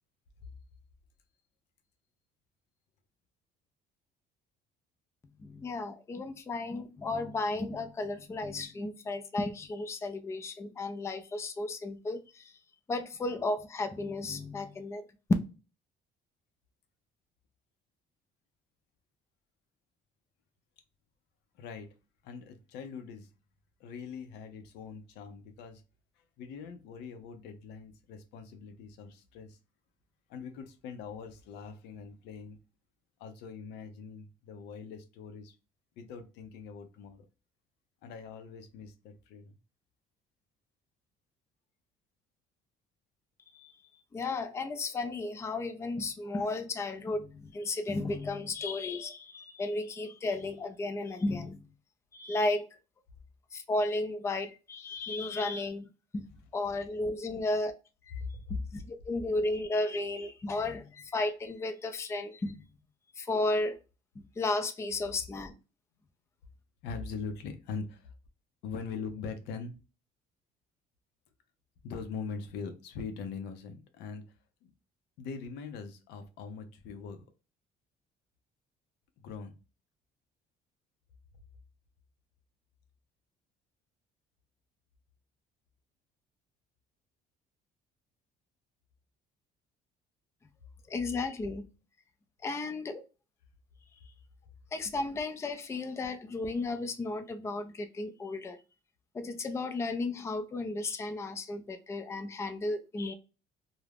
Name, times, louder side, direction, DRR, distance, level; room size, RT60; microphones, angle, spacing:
voice 1, 5.4-12.5 12.9-15.1 43.5-43.7 44.1-51.6 52.1-52.7 53.5-56.3 56.5-57.8 58.1-58.2 58.7-62.7 63.2-63.8 64.2-65.5 90.9-91.7 92.4-93.0 94.7-98.6 99.1-103.1, left 2 dB, 15° left, 0.3 m, -34 dB
voice 2, 21.5-21.9 22.2-23.3 23.8-25.8 26.2-29.6 30.3-32.6 33.2-35.6 36.0-37.3 38.0-39.5 58.2-58.6 66.8-68.2 68.6-69.7 71.8-74.2 74.6-74.7 75.2-77.2 79.2-79.5, left 5 dB, 85° left, 0.5 m, -42 dB
2.4 x 2.0 x 3.3 m
cardioid pair, 110°, 17 cm